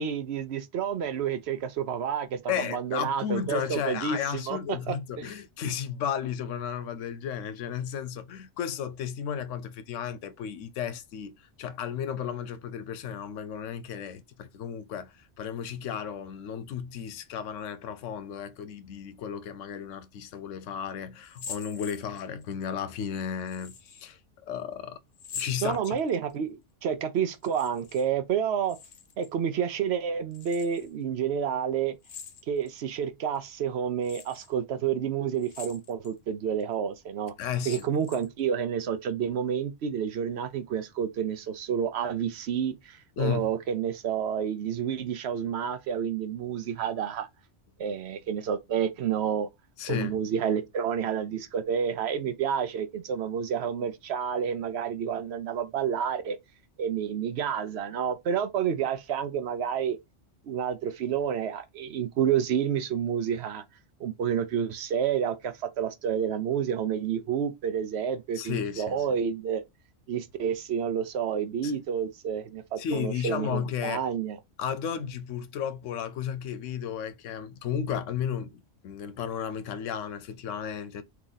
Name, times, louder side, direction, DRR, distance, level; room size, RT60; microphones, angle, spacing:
voice 1, 0.0-4.2 4.5-5.3 25.6-28.8 29.2-32.0 32.5-37.3 37.7-47.3 47.8-49.5 49.9-56.4 56.8-60.0 60.5-63.6 64.0-69.6 70.1-74.4, right 8 dB, 65° right, 0.8 m, -29 dB
voice 2, 2.5-25.0 25.3-26.0 37.4-37.9 43.2-43.5 49.8-50.2 68.4-69.1 71.6-71.8 72.8-74.0 74.6-81.0, left 8 dB, 90° left, 1.0 m, -34 dB
sound 1, 21.2-22.5 23.5-24.1 25.1-26.3 27.3-28.1 28.3-29.3 30.3-30.9 32.0-32.8 33.3-33.4 34.0-34.5 35.4-36.1 36.6-36.7 37.4-38.4, left 6 dB, 60° left, 0.9 m, -44 dB
3.7 x 2.9 x 3.9 m
omnidirectional pair, 1.2 m